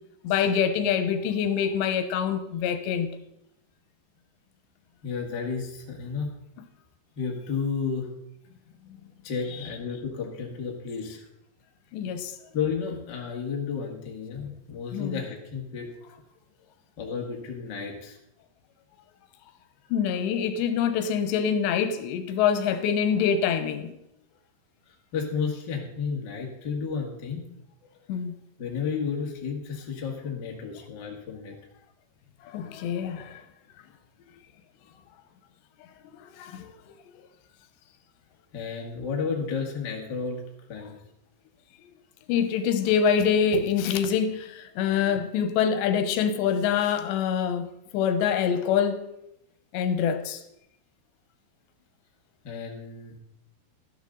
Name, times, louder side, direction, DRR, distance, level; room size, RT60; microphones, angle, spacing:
voice 1, 0.2-3.1 9.5-9.6 11.9-12.4 14.9-15.2 19.9-24.0 28.1-28.4 32.5-33.4 36.3-36.7 42.3-47.7 47.9-49.0 49.7-50.4, left 7 dB, 90° left, 3.2 m, -25 dB
voice 2, 5.0-6.3 7.1-8.1 9.2-11.2 12.5-15.9 17.0-18.2 24.9-27.5 28.6-31.5 38.5-40.4 40.7-40.9 52.4-53.1, left 5 dB, 40° left, 1.6 m, -32 dB
13.0 x 12.0 x 3.9 m
omnidirectional pair, 4.9 m